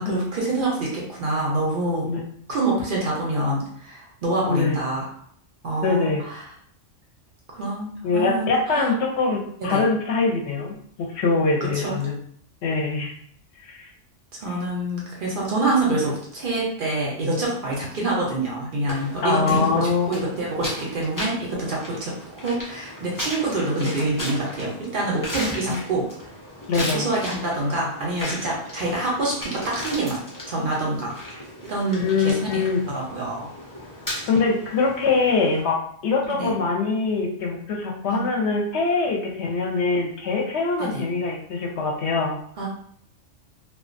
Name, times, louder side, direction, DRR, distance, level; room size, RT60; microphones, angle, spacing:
voice 1, 0.0-2.1 2.5-5.1 5.6-6.4 7.5-8.9 9.6-9.8 11.7-12.0 14.4-26.3 26.7-30.2 30.5-33.5 36.3-36.5 38.1-38.2 40.8-41.0 42.6-42.7, right 2 dB, 55° right, -3 dB, 0.6 m, -26 dB
voice 2, 4.4-4.8 5.8-6.2 8.0-12.1 12.6-13.1 13.7-13.8 19.2-20.1 25.6-25.8 26.7-27.1 31.9-32.8 34.3-35.8 36.0-42.4, left 4 dB, 65° left, 0 dB, 0.8 m, -23 dB
sound 1, 18.9-35.6, left 1 dB, 25° left, 0.4 m, -36 dB
2.3 x 2.2 x 2.5 m, 0.64 s
omnidirectional pair, 1.3 m